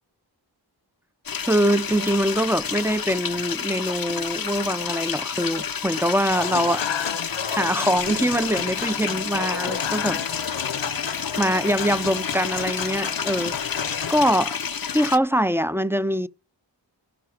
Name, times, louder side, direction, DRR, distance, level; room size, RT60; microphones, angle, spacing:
sound 1, 1.3-15.2, left 7 dB, 50° left, 0.7 m, -30 dB
voice 1, 1.5-7.0 7.5-10.5 11.4-13.6 14.1-14.5 14.9-16.3, equal, 5° right, 0.5 m, -23 dB
Human voice / Acoustic guitar / Piano, 6.3-14.3, left 7 dB, 85° left, 0.9 m, -32 dB
17.0 x 5.7 x 4.8 m
wide cardioid pair, 45°, 44 cm